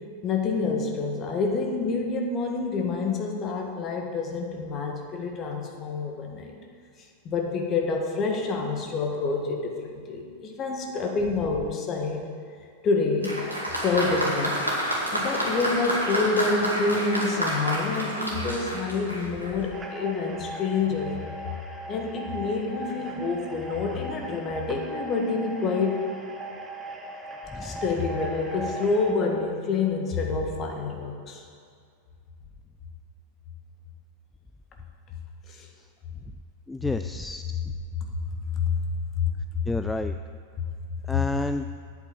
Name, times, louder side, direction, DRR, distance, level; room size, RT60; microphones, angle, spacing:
voice 1, 0.2-6.5 7.3-12.2 12.8-13.4 13.8-14.6 15.1-21.2 21.9-26.1 27.6-31.4 35.5-35.7 38.5-38.8 39.2-39.3, left 4 dB, 30° left, 2 dB, 1.7 m, -27 dB
Applause, 13.2-19.7, equal, 85° right, 2.2 m, -29 dB
sound 1, 19.7-29.1, right 1 dB, 15° right, 1.4 m, -38 dB
voice 2, 27.5-27.8 36.7-37.6 39.7-40.1 41.1-41.7, left 2 dB, 5° left, 9 dB, 0.3 m, -30 dB
8.3 x 8.2 x 8.6 m, 2.2 s
figure-of-eight pair, 90°, 0 cm